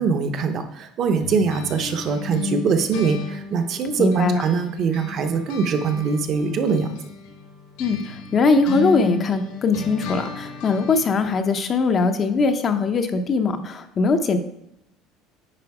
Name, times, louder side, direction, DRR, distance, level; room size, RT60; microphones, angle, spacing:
voice 1, 0.0-7.0, right 5 dB, 40° right, 7 dB, 0.8 m, -23 dB
sound 1, 1.2-4.7 4.9-11.3, left 3 dB, 80° left, 1.9 m, -34 dB
voice 2, 4.0-4.4 7.8-14.4, left 4 dB, 25° left, 7 dB, 0.6 m, -21 dB
9.8 x 4.4 x 4.8 m, 0.80 s
cardioid pair, 160°, 0 cm